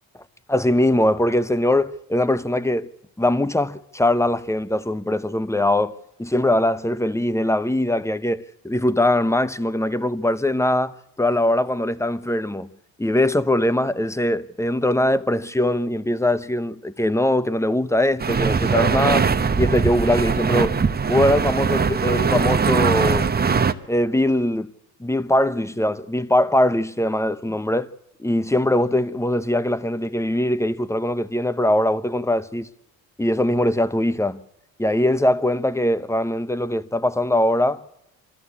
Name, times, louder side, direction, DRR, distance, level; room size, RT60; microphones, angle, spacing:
voice 1, 0.5-2.9 3.2-12.7 13.0-19.3 19.6-20.8 21.1-23.3 23.9-24.7 25.0-27.9 28.2-32.7 33.2-34.4 34.8-37.8, left 1 dB, 5° left, 1.0 m, -21 dB
sound 1, 18.2-23.7, right 5 dB, 25° right, 1.0 m, -21 dB
25.5 x 13.0 x 8.6 m
supercardioid pair, 65°, 39 cm